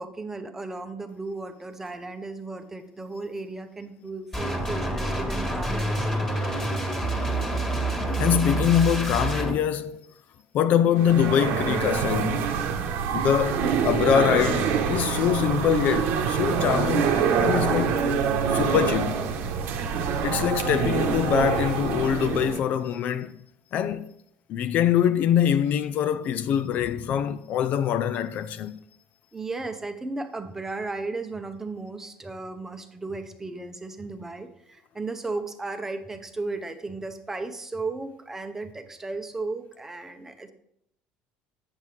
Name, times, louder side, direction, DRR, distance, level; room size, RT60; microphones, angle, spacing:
voice 1, 0.0-6.6 29.3-40.5, right 3 dB, 10° right, 0.7 m, -35 dB
sound 1, 4.3-9.5, right 2 dB, 15° left, 1.6 m, -27 dB
voice 2, 8.2-10.0 10.5-12.5 13.1-18.1 18.5-19.2 20.2-23.4 23.7-24.1 24.5-28.8, left 9 dB, 50° left, 0.4 m, -24 dB
sound 2, 11.0-22.6, right 6 dB, 65° right, 1.0 m, -25 dB
8.0 x 7.3 x 3.3 m
cardioid pair, 135°, 3 cm